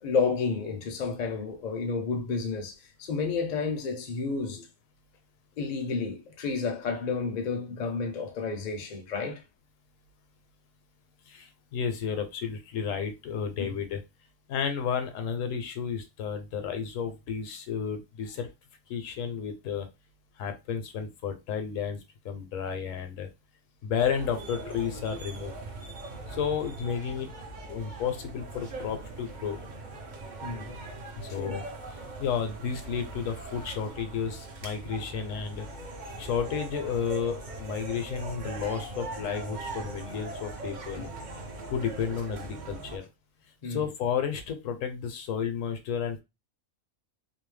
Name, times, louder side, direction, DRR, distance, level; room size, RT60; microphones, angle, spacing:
voice 1, 0.0-4.7 5.6-9.4 13.6-13.7 30.4-30.8 31.3-31.5 41.0-41.1 43.6-43.8, left 4 dB, 55° left, 0.5 m, -31 dB
voice 2, 11.3-14.0 14.5-18.5 18.9-19.9 20.4-23.3 23.8-25.5 26.3-27.3 27.7-29.6 31.2-31.6 32.2-35.7 36.2-41.1 41.7-43.0 43.6-46.2, left 7 dB, 75° left, 0.9 m, -32 dB
sound 1, 24.0-43.0, right 2 dB, 50° right, 0.5 m, -40 dB
2.7 x 2.0 x 3.1 m
omnidirectional pair, 1.4 m